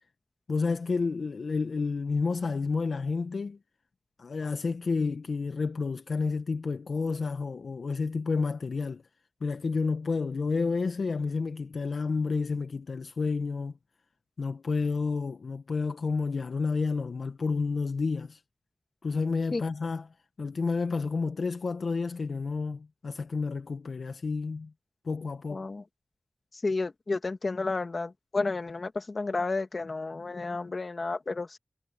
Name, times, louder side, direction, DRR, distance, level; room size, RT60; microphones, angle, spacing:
voice 1, 0.5-3.6 4.2-9.0 9.4-13.7 14.4-18.4 19.0-20.0 20.4-24.7 25.0-25.7, left 4 dB, 80° left, 0.8 m, -30 dB
voice 2, 25.5-25.8 26.5-31.6, left 3 dB, 50° left, 1.8 m, -31 dB
wide cardioid pair, 75°, 0 cm